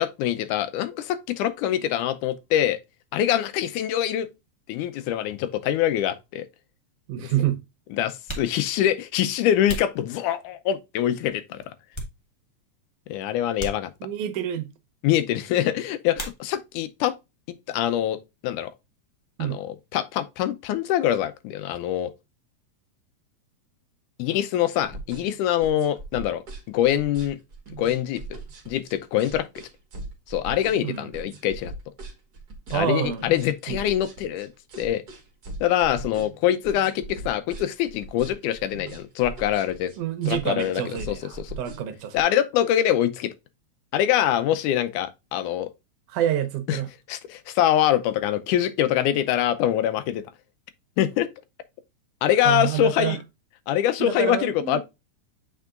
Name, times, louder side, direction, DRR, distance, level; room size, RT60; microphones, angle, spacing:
voice 1, 0.0-2.8 3.1-4.3 4.7-6.5 7.2-7.5 7.9-11.6 13.1-13.9 15.0-17.2 17.7-18.2 18.4-18.7 19.4-22.1 24.2-26.4 26.7-27.4 27.8-28.2 28.7-29.5 30.3-31.7 32.7-34.5 34.8-35.0 35.6-39.9 40.3-40.8 41.1-41.5 42.1-43.3 43.9-45.7 46.7-46.8 47.1-50.2 51.0-51.3 52.2-53.2 53.7-54.8, left 11 dB, 85° left, 2.2 m, -24 dB
voice 2, 7.1-7.6 14.0-14.7 19.4-19.6 30.8-31.1 32.7-33.2 33.7-33.8 40.0-42.2 46.1-46.9 52.5-53.2 54.0-54.8, right 11 dB, 85° right, 2.4 m, -27 dB
sound 1, 8.2-10.7 11.3-12.7 12.9-13.1 13.5-14.4 16.1-16.9 17.2-17.9 18.1-20.3, right 1 dB, 25° left, 0.6 m, -40 dB
sound 2, 24.8-42.2, right 2 dB, 40° right, 1.6 m, -40 dB
8.1 x 4.7 x 2.4 m
omnidirectional pair, 3.5 m